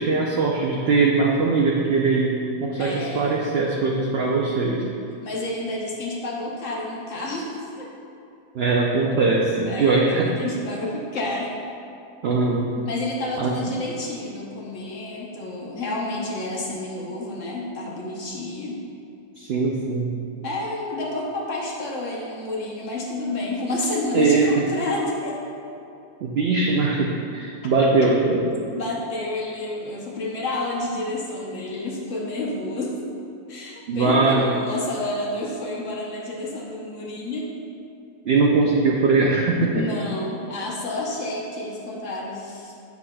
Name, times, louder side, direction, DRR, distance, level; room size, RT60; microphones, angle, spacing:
voice 1, 0.0-4.8 8.5-10.3 12.2-12.7 13.4-13.6 19.4-20.1 24.1-24.5 26.2-28.4 33.9-34.5 38.3-39.8, right 3 dB, 70° right, -2 dB, 0.6 m, -21 dB
voice 2, 2.8-3.4 5.2-7.5 7.8-7.9 9.7-11.6 12.8-18.8 20.4-25.4 27.8-28.1 28.7-33.0 33.5-37.5 39.7-42.7, left 2 dB, 60° left, -3 dB, 1.1 m, -30 dB
7.8 x 5.8 x 2.2 m, 2.7 s
omnidirectional pair, 1.6 m